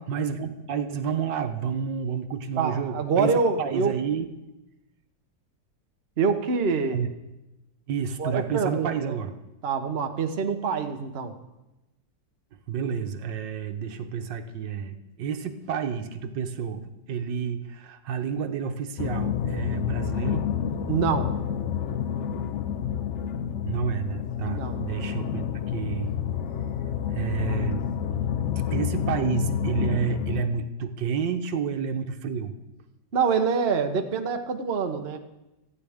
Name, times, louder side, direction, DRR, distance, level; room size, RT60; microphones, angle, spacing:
voice 1, 0.0-4.3 6.9-7.1 7.9-9.3 12.7-20.5 23.6-26.1 27.1-27.8 28.7-32.5, right 7 dB, 85° right, 7 dB, 1.6 m, -30 dB
voice 2, 2.6-3.9 6.2-7.1 8.2-9.2 9.6-11.3 20.9-21.3 24.5-24.8 33.1-35.2, right 5 dB, 40° right, 5 dB, 1.0 m, -25 dB
sound 1, 19.0-30.5, left 8 dB, 65° left, 0.7 m, -29 dB
18.5 x 13.5 x 3.6 m, 0.98 s
omnidirectional pair, 1.9 m